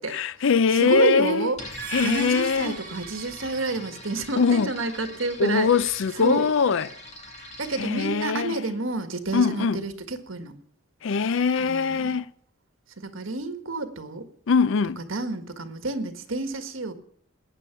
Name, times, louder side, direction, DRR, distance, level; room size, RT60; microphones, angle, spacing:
voice 1, 0.1-1.5 1.9-2.8 4.4-4.7 5.4-6.9 7.8-8.6 9.3-9.8 11.0-12.2 14.5-15.0, left 5 dB, 65° left, 0.5 m, -22 dB
voice 2, 0.7-1.6 2.0-5.7 6.1-6.5 7.6-10.5 11.6-12.2 13.0-14.3 15.0-16.9, right 2 dB, 70° right, 1.7 m, -29 dB
sound 1, 1.5-8.2, left 1 dB, 35° left, 2.6 m, -43 dB
sound 2, 1.6-3.8, right 7 dB, 45° right, 1.9 m, -38 dB
19.0 x 9.4 x 5.9 m
head